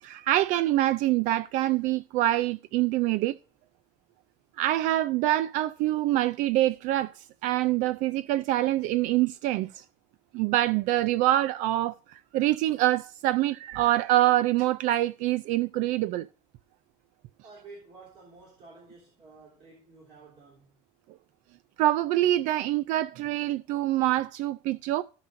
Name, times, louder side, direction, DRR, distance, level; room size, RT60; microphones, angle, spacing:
voice 1, 0.0-3.4 4.6-9.8 10.3-16.3 21.8-25.0, right 15 dB, 70° right, 0.4 m, -25 dB
voice 2, 17.4-20.7, right 3 dB, 40° right, 3.4 m, -51 dB
17.0 x 5.9 x 2.6 m
cardioid pair, 170°, 13 cm